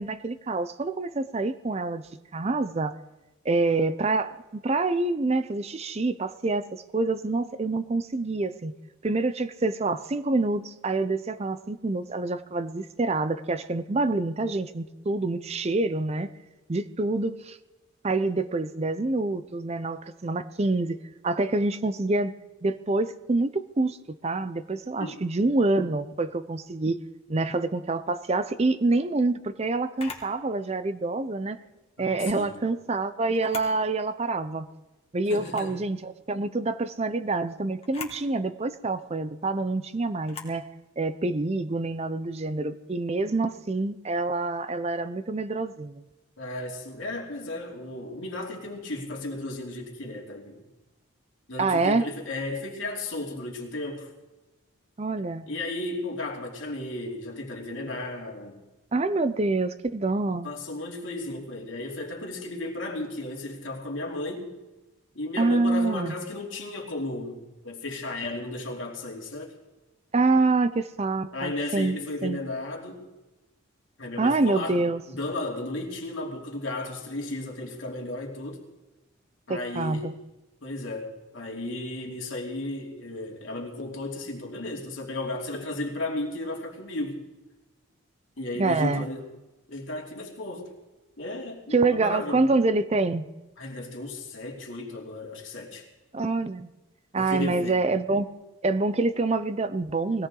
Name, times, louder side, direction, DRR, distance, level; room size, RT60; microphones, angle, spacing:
voice 1, 0.0-2.0 2.3-3.0 3.4-8.7 9.0-16.3 16.7-17.6 18.0-21.0 21.2-22.3 22.6-27.0 27.3-31.6 32.0-34.7 35.1-40.7 41.0-46.0 51.6-52.0 55.0-55.5 58.9-60.5 65.4-66.1 70.1-72.4 74.2-75.0 79.5-80.1 88.6-89.1 91.7-93.3 96.1-96.7 97.1-98.3 98.6-100.3, right 3 dB, 30° right, 12 dB, 0.5 m, -26 dB
Camera, 30.0-30.3 32.0-32.4 33.3-33.8 34.2-34.3 35.4-35.8 37.8-38.2 40.2-40.6, left 5 dB, 25° left, 1.8 m, -41 dB
voice 2, 32.0-32.6 35.3-35.8 46.4-50.6 51.5-54.1 55.5-58.6 60.4-64.5 65.1-69.5 71.3-73.1 74.0-74.8 75.1-78.6 79.5-80.1 80.6-87.3 88.4-89.3 89.7-90.7 91.2-92.4 93.6-95.8 97.2-97.8, left 2 dB, 60° left, -1 dB, 2.8 m, -34 dB
20.5 x 17.0 x 3.8 m, 1.1 s
head